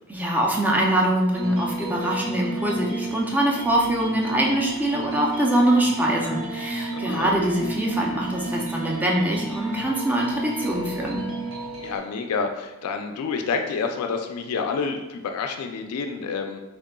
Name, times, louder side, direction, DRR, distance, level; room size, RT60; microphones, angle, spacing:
voice 1, 0.1-11.2, right 1 dB, 10° right, -2 dB, 0.4 m, -23 dB
sound 1, 1.3-12.0, right 2 dB, 65° right, 0.8 m, -32 dB
voice 2, 6.9-7.3 11.8-16.6, left 5 dB, 75° left, 5 dB, 0.3 m, -28 dB
3.7 x 3.4 x 2.2 m, 1.0 s
head